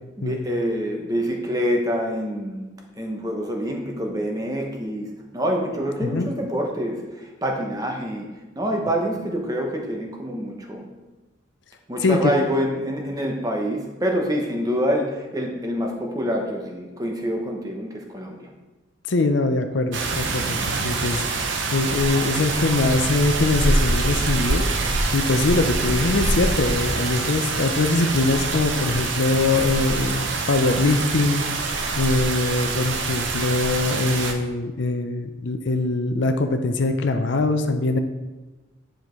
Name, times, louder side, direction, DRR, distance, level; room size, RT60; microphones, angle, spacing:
voice 1, 0.2-10.9 11.9-18.5, equal, 20° right, 1 dB, 0.9 m, -26 dB
voice 2, 19.1-20.6 20.8-38.0, left 3 dB, 65° left, 7 dB, 0.5 m, -23 dB
sound 1, 19.9-34.3, right 3 dB, 70° right, 0.7 m, -25 dB
9.7 x 5.1 x 3.1 m, 1.2 s
head